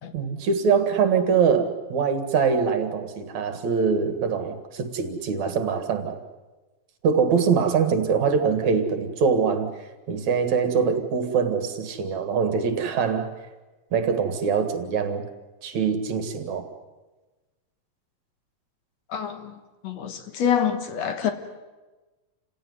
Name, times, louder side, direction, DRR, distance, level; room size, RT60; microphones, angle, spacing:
voice 1, 0.1-6.2 7.0-9.7 10.1-13.3 13.9-15.2 15.6-16.7, right 6 dB, 70° right, 3.1 m, -23 dB
voice 2, 19.1-19.5 19.8-21.3, left 8 dB, 65° left, 2.6 m, -26 dB
29.0 x 16.5 x 9.6 m
omnidirectional pair, 3.4 m